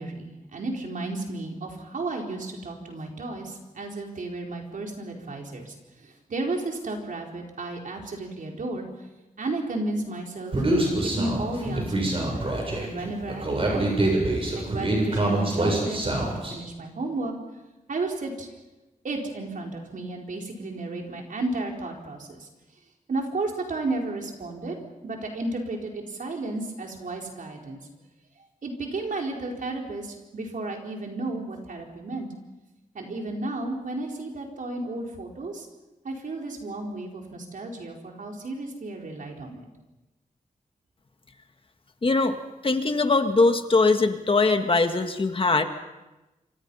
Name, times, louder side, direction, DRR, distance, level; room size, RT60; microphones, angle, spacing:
voice 1, 0.0-9.1 9.4-10.6 11.2-14.1 14.6-17.3 17.9-18.5 19.0-22.5 23.1-24.7 25.0-27.8 28.6-32.3 32.9-35.7 36.0-39.7, right 2 dB, 65° right, 1 dB, 4.6 m, -33 dB
Human voice, 10.5-16.5, right 1 dB, 40° right, 7.6 m, -25 dB
voice 2, 42.0-42.4 42.6-45.6, left 3 dB, 40° left, 7 dB, 1.8 m, -21 dB
27.0 x 26.5 x 5.7 m, 1.0 s
wide cardioid pair, 125°, 14 cm